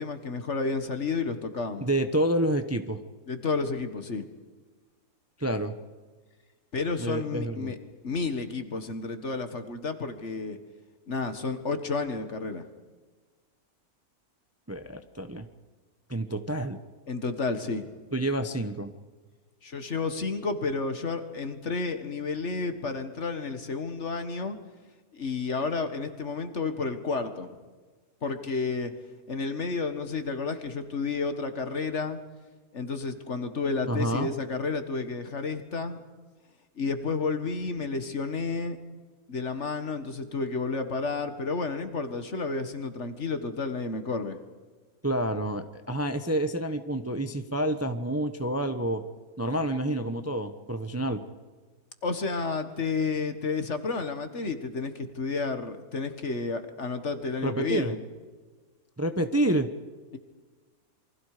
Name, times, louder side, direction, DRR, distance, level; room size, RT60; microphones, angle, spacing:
voice 1, 0.0-1.9 3.3-4.3 6.7-7.8 8.0-10.6 11.1-12.6 17.1-18.0 19.6-24.6 25.1-27.5 28.2-28.9 29.3-32.2 32.7-36.0 36.8-38.8 39.3-44.4 52.0-58.0 60.1-60.2, left 4 dB, 50° left, 9 dB, 1.9 m, -31 dB
voice 2, 1.8-3.0 5.4-5.7 7.0-7.7 14.7-15.5 16.1-16.8 18.1-18.9 33.9-34.3 45.0-49.0 49.4-51.2 57.4-57.9 59.0-59.7, right 1 dB, 10° right, 8 dB, 0.9 m, -28 dB
28.0 x 24.0 x 5.0 m, 1.4 s
omnidirectional pair, 1.6 m